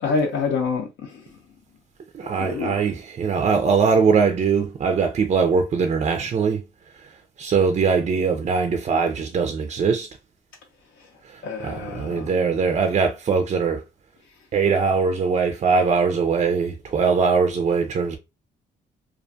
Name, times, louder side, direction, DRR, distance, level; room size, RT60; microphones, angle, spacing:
voice 1, 0.0-1.2 2.4-2.7 11.4-12.3, left 4 dB, 75° left, 0.6 m, -26 dB
voice 2, 2.1-6.6 6.9-10.1 11.2-13.8 14.5-18.2, right 5 dB, 35° right, 0.4 m, -21 dB
2.4 x 2.2 x 2.5 m
cardioid pair, 90°, 20 cm